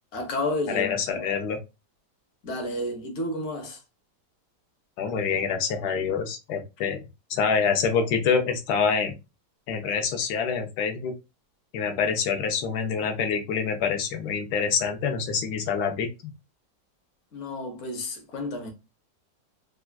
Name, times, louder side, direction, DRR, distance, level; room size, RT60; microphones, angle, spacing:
voice 1, 0.0-0.9 2.4-3.8 17.3-18.7, left 1 dB, 55° left, 1.0 m, -31 dB
voice 2, 0.7-1.6 5.0-7.0 7.3-9.1 9.7-11.1 11.7-16.3, left 6 dB, 75° left, 1.1 m, -26 dB
3.3 x 2.3 x 2.2 m
omnidirectional pair, 1.9 m